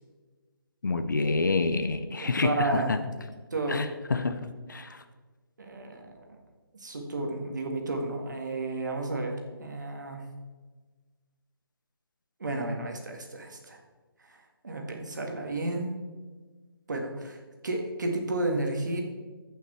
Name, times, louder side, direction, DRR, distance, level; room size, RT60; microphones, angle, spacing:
voice 1, 0.8-3.0 3.7-4.4 4.7-5.0, left 3 dB, 50° left, 9 dB, 0.8 m, -27 dB
voice 2, 2.2-2.9 3.5-3.8 5.6-6.2 6.8-10.2 12.4-13.8 14.3-14.4 14.6-16.0 16.9-19.0, right 2 dB, 50° right, 2 dB, 1.8 m, -32 dB
14.5 x 5.9 x 4.3 m, 1.4 s
hypercardioid pair, 175°, 13 cm